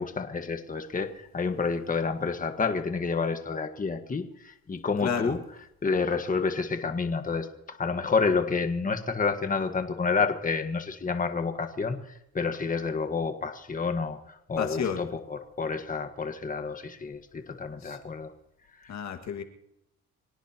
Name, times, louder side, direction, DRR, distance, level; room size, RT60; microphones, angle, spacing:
voice 1, 0.0-5.4 5.8-18.3 18.8-18.9, left 4 dB, 25° left, 6 dB, 1.6 m, -29 dB
voice 2, 5.0-5.4 14.6-15.0 17.8-18.0 18.9-19.4, left 7 dB, 65° left, 5 dB, 2.0 m, -31 dB
26.0 x 17.5 x 3.0 m, 0.83 s
cardioid pair, 90°, 30 cm